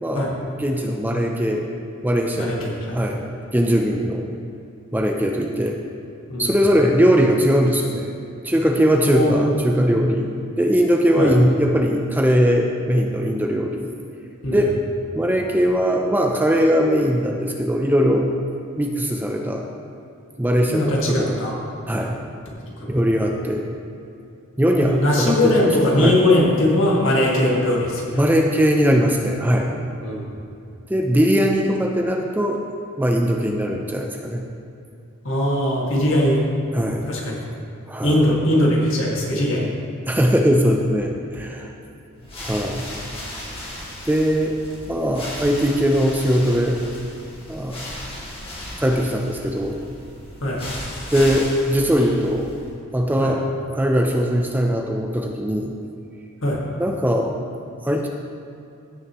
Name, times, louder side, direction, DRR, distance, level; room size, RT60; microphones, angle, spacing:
voice 1, 0.0-1.6 2.0-2.7 2.9-3.2 3.5-4.3 4.9-5.8 6.4-8.1 8.4-13.9 14.5-14.7 15.1-18.3 18.8-19.7 20.4-21.4 21.9-22.2 22.9-23.7 24.6-25.7 26.0-26.2 28.2-29.7 30.9-34.5 36.7-37.1 37.9-38.2 39.6-39.7 40.1-41.7 42.4-42.9 44.0-44.6 44.9-46.8 47.5-47.9 48.8-49.8 51.1-52.5 52.9-53.4 53.7-55.7 56.8-57.3 57.8-58.1, equal, 10° right, 2 dB, 0.5 m, -20 dB
voice 2, 2.4-3.0 6.3-6.5 9.0-9.5 11.2-11.3 14.4-14.6 20.7-21.6 22.8-23.0 24.8-28.2 30.0-30.3 35.2-36.4 37.1-37.4 38.0-39.7 50.4-50.6 53.2-53.3 56.4-56.6, left 1 dB, 65° left, -3 dB, 1.9 m, -20 dB
sound 1, 42.1-52.8, left 1 dB, 25° left, 1.7 m, -36 dB
15.5 x 6.4 x 3.0 m, 2.7 s
head